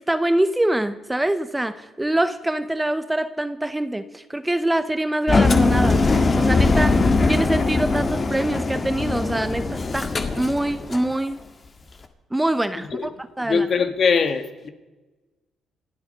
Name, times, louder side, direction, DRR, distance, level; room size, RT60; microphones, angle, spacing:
voice 1, 0.0-7.0 7.3-11.4 12.3-13.1 13.4-13.7, right 1 dB, 10° right, 0.8 m, -24 dB
Engine, 5.3-11.1, left 3 dB, 35° left, 1.7 m, -20 dB
voice 2, 13.4-14.7, left 5 dB, 55° left, 1.7 m, -22 dB
26.5 x 8.9 x 5.4 m
cardioid pair, 90°, 0 cm